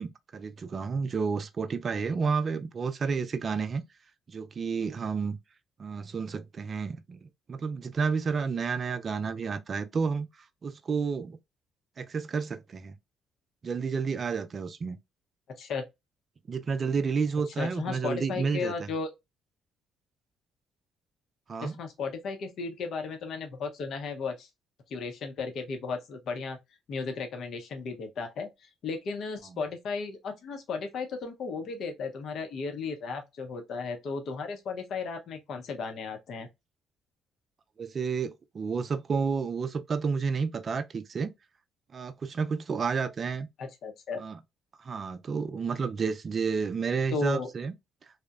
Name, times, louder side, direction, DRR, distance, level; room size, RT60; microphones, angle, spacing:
voice 1, 0.0-3.8 4.3-5.4 5.8-10.3 10.6-11.4 12.0-13.0 13.6-15.0 16.5-18.9 21.5-21.8 37.8-41.3 41.9-43.5 44.2-44.4 44.8-47.7, right 5 dB, 45° right, 0.4 m, -31 dB
voice 2, 17.6-19.1 21.6-24.5 24.9-26.6 26.9-28.5 28.8-36.5 43.6-44.2 47.1-47.5, left 4 dB, 65° left, 0.6 m, -35 dB
2.8 x 2.0 x 2.3 m
supercardioid pair, 80°, 0 cm